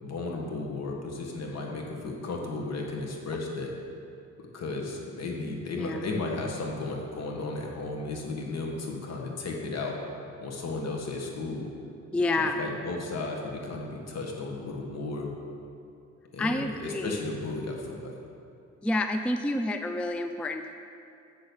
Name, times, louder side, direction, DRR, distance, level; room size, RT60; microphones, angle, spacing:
voice 1, 0.0-3.7 4.4-9.9 10.4-11.6 12.4-15.3 16.3-18.1, left 3 dB, 60° left, 0 dB, 1.7 m, -34 dB
voice 2, 12.1-12.6 16.4-17.2 18.8-20.7, left 2 dB, 5° left, 7 dB, 0.3 m, -28 dB
7.5 x 6.3 x 7.1 m, 2.7 s
cardioid pair, 90°, 30 cm